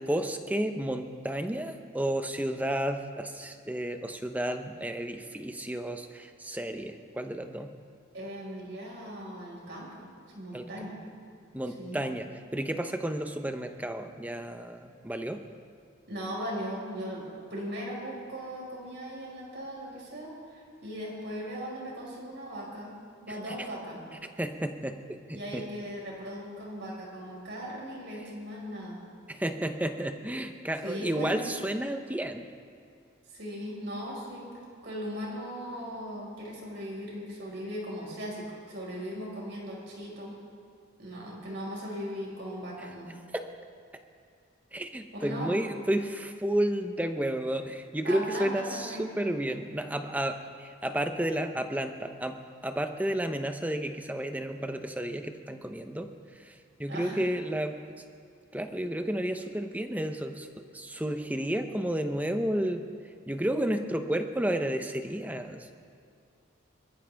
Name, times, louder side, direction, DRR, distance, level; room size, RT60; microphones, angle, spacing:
voice 1, 0.0-7.7 10.5-10.7 11.5-12.3 12.5-15.4 23.3-23.6 24.4-25.6 29.3-32.5 43.3-43.5 44.7-52.4 52.6-56.1 56.3-57.8 58.5-62.8 63.3-65.8, right 1 dB, 10° right, 7 dB, 0.7 m, -32 dB
voice 2, 8.1-10.0 10.3-11.0 11.8-12.0 16.1-17.2 17.5-24.0 25.3-29.0 30.8-31.4 33.3-40.3 41.0-43.1 45.1-45.5 48.0-49.1 56.9-57.2, equal, 60° right, -3 dB, 4.9 m, -38 dB
26.0 x 14.0 x 3.5 m, 2.3 s
head